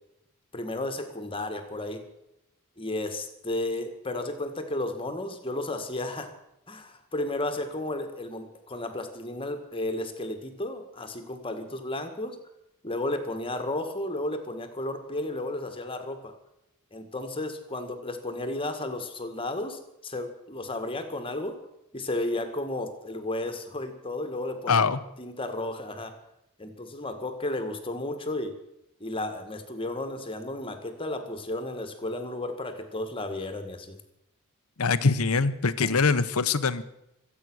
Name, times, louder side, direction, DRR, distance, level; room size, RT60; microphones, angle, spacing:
voice 1, 0.5-2.0 2.8-6.3 6.7-12.4 12.8-16.3 16.9-21.6 21.9-24.8 25.2-26.1 26.6-28.5 29.0-34.0 35.8-36.0, left 2 dB, 25° left, 7 dB, 1.8 m, -33 dB
voice 2, 24.7-25.0 34.8-36.8, left 4 dB, 75° left, 14 dB, 0.9 m, -23 dB
24.5 x 8.5 x 6.3 m, 0.84 s
head